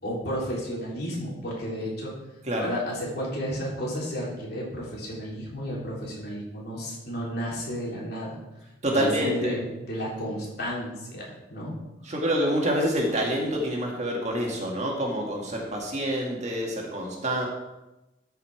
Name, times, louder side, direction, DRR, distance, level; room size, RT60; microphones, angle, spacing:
voice 1, 0.0-2.1 2.6-8.4 8.9-11.7, equal, 55° left, -4 dB, 3.4 m, -32 dB
voice 2, 8.8-9.6 12.0-17.5, equal, 35° right, -1 dB, 1.9 m, -27 dB
13.0 x 5.7 x 4.8 m, 0.98 s
head